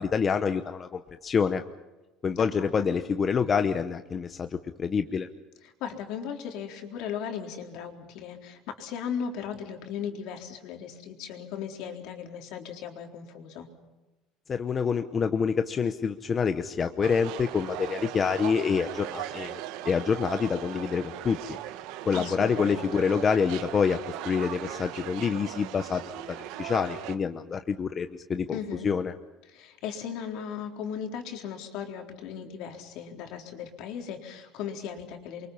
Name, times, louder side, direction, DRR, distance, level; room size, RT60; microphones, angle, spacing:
voice 1, 0.0-1.6 2.2-5.3 14.5-19.6 19.8-21.4 22.0-24.0 24.2-26.0 26.3-28.6 28.8-29.1, left 6 dB, 25° left, 8 dB, 0.9 m, -27 dB
voice 2, 2.4-2.9 5.6-13.7 22.1-23.1 28.5-28.9 29.5-35.5, left 7 dB, 60° left, 3 dB, 4.0 m, -37 dB
sound 1, 17.0-27.2, right 13 dB, 70° right, 1.4 m, -38 dB
29.0 x 24.0 x 5.7 m, 1.1 s
cardioid pair, 150°, 0 cm